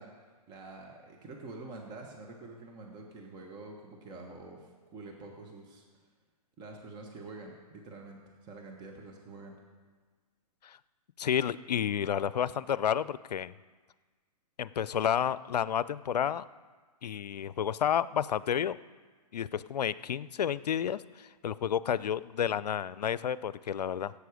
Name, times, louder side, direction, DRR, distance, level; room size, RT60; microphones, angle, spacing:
voice 1, 0.0-5.8 6.6-9.5, right 3 dB, 20° right, 1 dB, 1.3 m, -47 dB
voice 2, 11.2-13.5 14.6-16.5 17.0-18.8 19.3-24.1, left 9 dB, 80° left, 18 dB, 0.5 m, -31 dB
16.5 x 8.4 x 5.0 m, 1.4 s
hypercardioid pair, 140°, 21 cm